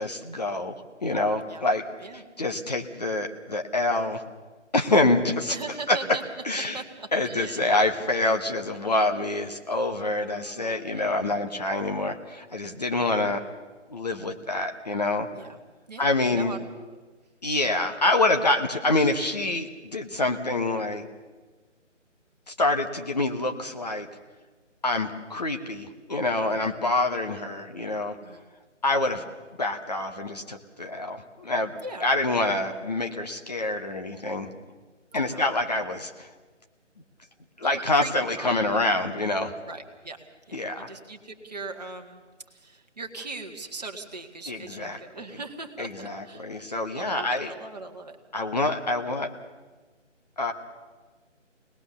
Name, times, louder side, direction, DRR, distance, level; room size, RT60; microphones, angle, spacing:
voice 1, 0.0-1.9 2.1-4.2 4.7-5.6 5.9-6.0 6.4-6.8 7.1-13.4 13.9-15.3 16.0-16.5 17.4-21.0 22.5-24.1 24.8-28.2 28.8-29.2 29.6-34.5 35.1-36.3 37.6-39.5 40.5-40.9 44.5-45.0 45.8-47.5 48.3-49.3 50.4-50.5, left 2 dB, 35° left, 4 dB, 1.2 m, -26 dB
voice 2, 5.5-6.2 6.7-7.6 10.2-11.3 15.3-15.6 15.9-16.7 26.5-26.7 28.2-28.4 31.8-32.1 35.1-35.5 37.6-39.0 39.7-45.9 46.2-46.5 47.0-48.2, right 3 dB, 35° right, 3 dB, 1.7 m, -40 dB
25.0 x 19.5 x 6.9 m, 1.3 s
figure-of-eight pair, 155°, 38 cm